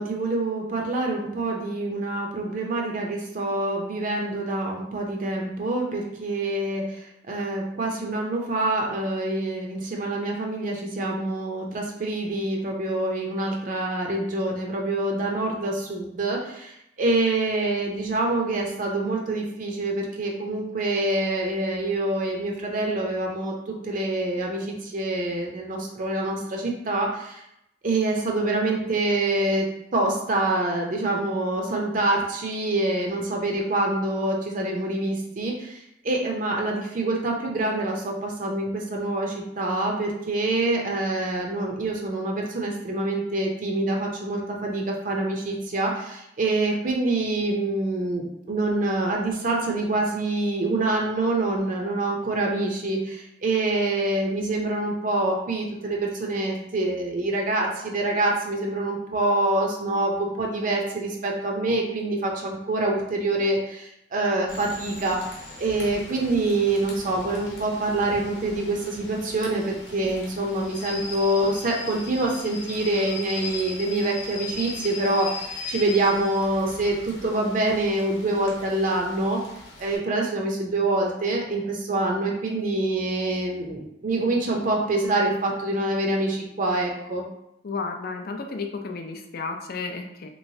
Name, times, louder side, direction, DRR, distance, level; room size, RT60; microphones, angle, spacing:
voice 1, 0.0-27.4 27.8-35.8 36.0-65.2 65.6-79.4 79.8-87.2, right 2 dB, 45° right, 0 dB, 0.5 m, -26 dB
Rain / Train, 64.5-80.0, left 3 dB, 90° left, 0.9 m, -39 dB
voice 2, 87.6-90.3, left 4 dB, 55° left, 4 dB, 0.5 m, -32 dB
3.1 x 3.1 x 2.7 m, 0.80 s
head